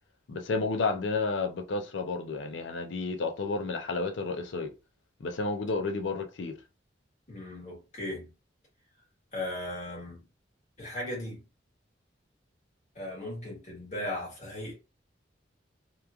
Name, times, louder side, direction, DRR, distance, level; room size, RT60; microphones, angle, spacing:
voice 1, 0.3-4.7 5.2-6.5, left 3 dB, 75° left, 0.4 m, -31 dB
voice 2, 7.3-8.3 9.3-10.2 10.8-11.4 12.9-14.7, left 1 dB, 40° left, 1.5 m, -37 dB
2.9 x 2.3 x 2.3 m
head